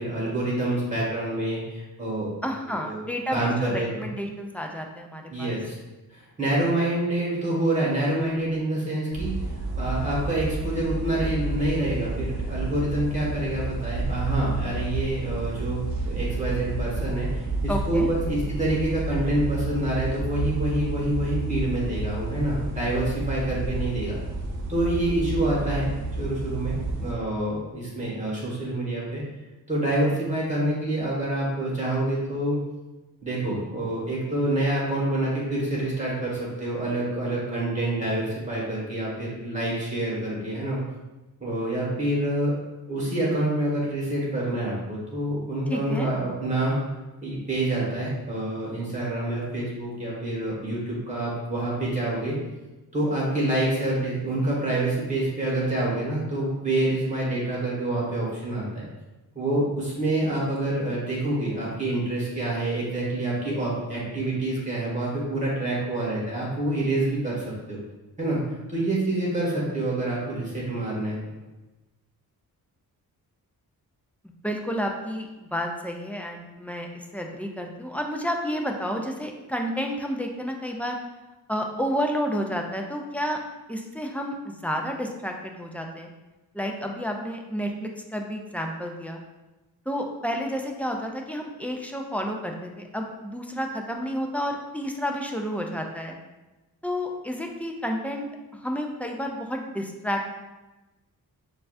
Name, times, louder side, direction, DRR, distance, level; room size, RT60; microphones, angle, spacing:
voice 1, 0.0-2.3 2.7-4.1 5.3-5.7 6.1-24.2 24.7-29.2 29.7-32.6 33.2-40.8 41.4-42.5 42.9-46.7 47.2-52.4 52.9-58.8 59.3-67.8 68.2-68.4 68.7-71.2, right 1 dB, 20° right, -6 dB, 1.4 m, -27 dB
voice 2, 2.4-5.6 17.7-18.1 45.7-46.1 74.4-76.9 77.1-81.0 81.5-83.4 83.7-86.1 86.5-89.2 89.9-96.2 96.8-98.3 98.6-100.3, equal, 5° left, 2 dB, 0.3 m, -30 dB
sound 1, 9.1-27.1, right 2 dB, 55° right, 0.7 m, -30 dB
6.8 x 2.4 x 2.5 m, 1.1 s
wide cardioid pair, 140°, 36 cm